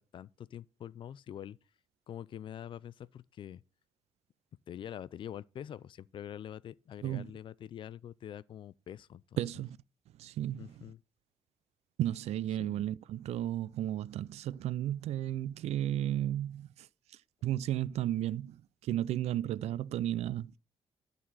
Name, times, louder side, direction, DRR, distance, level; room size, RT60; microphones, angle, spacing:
voice 1, 0.0-1.6 2.1-3.6 4.7-9.4 10.6-11.0 12.6-12.9, left 10 dB, 50° left, 0.4 m, -45 dB
voice 2, 9.4-9.8 10.2-10.7 12.0-16.9 17.4-20.5, right 12 dB, 80° right, 0.4 m, -33 dB
11.0 x 4.1 x 7.3 m
cardioid pair, 145°, 11 cm